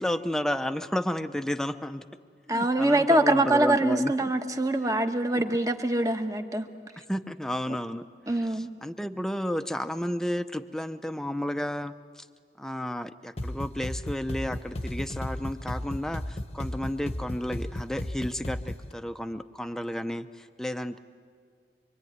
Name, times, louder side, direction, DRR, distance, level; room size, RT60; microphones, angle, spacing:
voice 1, 0.0-2.0 2.5-4.1 5.3-5.4 6.8-12.3 12.6-21.0, left 1 dB, 5° left, 9 dB, 0.7 m, -32 dB
voice 2, 2.5-6.7 8.3-8.7, right 1 dB, 20° right, 6 dB, 1.2 m, -24 dB
sound 1, 13.4-18.9, left 1 dB, 35° left, 1.0 m, -35 dB
25.0 x 24.5 x 9.5 m, 2.2 s
head